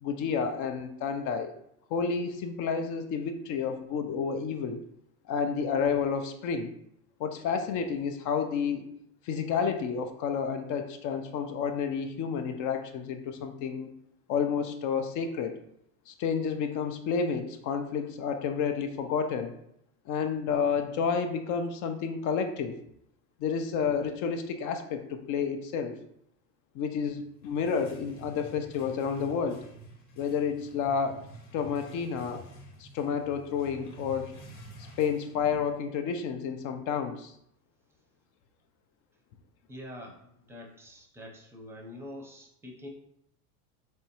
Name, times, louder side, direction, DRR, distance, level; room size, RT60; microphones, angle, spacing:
voice 1, 0.0-1.5 1.9-4.8 5.3-6.7 7.2-8.9 9.2-13.9 14.3-15.5 16.1-19.5 20.1-22.7 23.4-26.0 26.7-29.6 30.2-31.2 31.5-32.4 32.8-34.3 35.0-37.3, left 6 dB, 45° left, 6 dB, 0.5 m, -30 dB
sound 1, 27.2-35.9, equal, 75° left, 1.1 m, -49 dB
voice 2, 39.7-42.9, left 1 dB, 5° right, 0 dB, 0.7 m, -45 dB
3.5 x 3.1 x 2.9 m, 0.74 s
hypercardioid pair, 95°, 46 cm